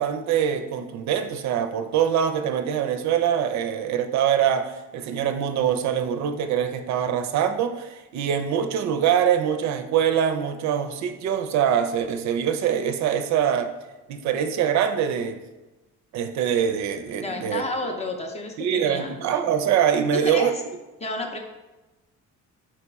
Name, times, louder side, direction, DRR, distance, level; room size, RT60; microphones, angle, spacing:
voice 1, 0.0-13.7 14.1-15.4 16.1-17.6 18.6-20.5, right 8 dB, 65° right, 0.4 m, -24 dB
voice 2, 17.2-19.1 20.1-20.6 21.0-21.4, left 2 dB, 20° left, 0.5 m, -30 dB
4.7 x 3.0 x 3.5 m
cardioid pair, 120°, 30 cm